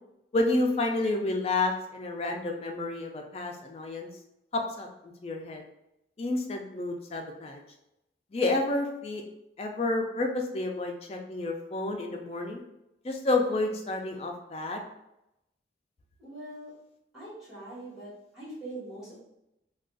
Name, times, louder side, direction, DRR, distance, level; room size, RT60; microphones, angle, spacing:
voice 1, 0.3-4.1 4.5-5.6 6.2-7.6 8.3-9.2 9.6-12.6 13.0-14.8, left 2 dB, 35° left, 2 dB, 0.4 m, -30 dB
voice 2, 16.2-16.7 17.1-19.2, right 1 dB, ahead, -9 dB, 1.3 m, -42 dB
2.5 x 2.3 x 3.7 m, 0.87 s
head